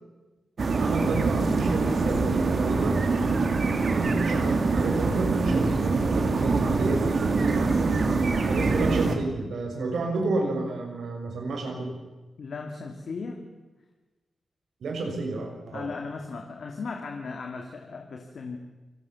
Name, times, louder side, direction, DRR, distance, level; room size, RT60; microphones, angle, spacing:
sound 1, 0.6-9.1, right 3 dB, 55° right, 2.8 m, -24 dB
voice 1, 0.7-3.0 3.9-7.9 8.5-11.9 14.8-15.9, right 2 dB, 85° right, 3 dB, 6.1 m, -30 dB
voice 2, 12.4-13.4 15.7-18.6, left 4 dB, 70° left, 3 dB, 2.6 m, -36 dB
29.0 x 19.0 x 7.2 m, 1.2 s
cardioid pair, 75°, 0 cm